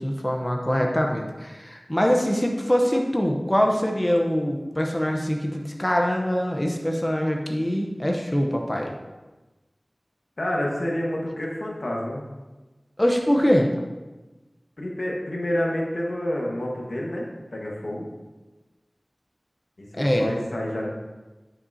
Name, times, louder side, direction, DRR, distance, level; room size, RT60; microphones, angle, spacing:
voice 1, 0.0-8.9 13.0-13.7 20.0-20.3, equal, 20° left, 1 dB, 0.8 m, -23 dB
voice 2, 10.4-12.2 14.8-18.1 19.8-20.9, left 1 dB, 85° left, -2 dB, 1.3 m, -28 dB
9.4 x 5.8 x 2.7 m, 1.2 s
wide cardioid pair, 45°, 0 cm